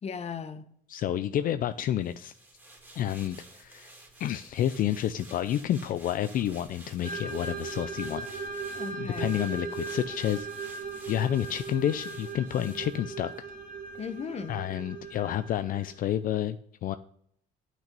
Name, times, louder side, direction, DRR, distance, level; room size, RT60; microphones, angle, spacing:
voice 1, 0.0-0.6 8.7-9.4 14.0-14.6, left 6 dB, 40° left, 11 dB, 1.0 m, -37 dB
voice 2, 0.9-2.3 3.0-3.9 4.2-8.3 9.0-10.5 11.1-13.3 14.5-16.6 16.8-17.0, left 11 dB, 55° left, 12 dB, 0.4 m, -29 dB
sound 1, 2.0-13.6 13.9-14.1, right 2 dB, 10° right, 2.5 m, -52 dB
sound 2, 7.0-16.1, right 4 dB, 55° right, 1.6 m, -38 dB
8.1 x 6.2 x 5.2 m, 0.66 s
cardioid pair, 110°, 17 cm